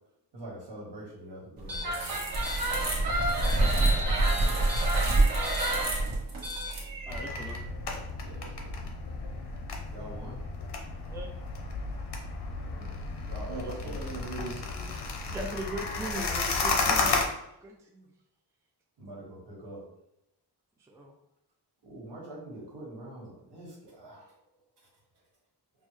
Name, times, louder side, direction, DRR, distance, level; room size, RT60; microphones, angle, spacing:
voice 1, 0.3-2.2 3.5-4.6 9.9-10.4 12.6-14.0 19.0-19.8 21.8-24.3, right 1 dB, 80° right, -3 dB, 1.5 m, -45 dB
sound 1, 1.6-7.6, right 2 dB, 55° right, 1.2 m, -26 dB
Mooring Rope, 7.1-17.2, left 3 dB, 80° left, 0.8 m, -33 dB
voice 2, 7.1-8.0 11.1-11.3 15.3-18.1 20.8-21.1, right 1 dB, 10° right, 0 dB, 0.3 m, -40 dB
voice 3, 8.2-8.8 13.5-15.2, right 3 dB, 40° right, -3 dB, 1.2 m, -41 dB
5.3 x 2.1 x 3.2 m, 0.81 s
wide cardioid pair, 135°, 41 cm